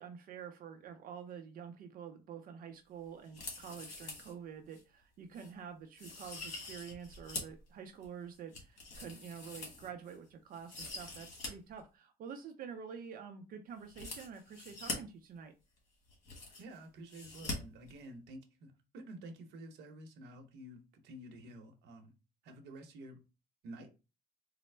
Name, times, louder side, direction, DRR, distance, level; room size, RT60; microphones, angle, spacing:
voice 1, 0.0-15.5, right 7 dB, 55° right, 0.5 m, -48 dB
sound 1, 3.2-4.3 4.7-4.8 5.3-5.5 6.0-7.6 8.0-10.1 10.5-11.5 11.8-11.9 13.9-15.0 15.8-15.9 16.0-16.8 17.1-17.5 17.8-17.9, left 3 dB, 45° left, 1.5 m, -44 dB
voice 2, 16.6-22.1 22.4-23.2 23.6-23.9, right 1 dB, 80° right, 0.8 m, -50 dB
4.1 x 2.0 x 3.2 m
cardioid pair, 110°, 17 cm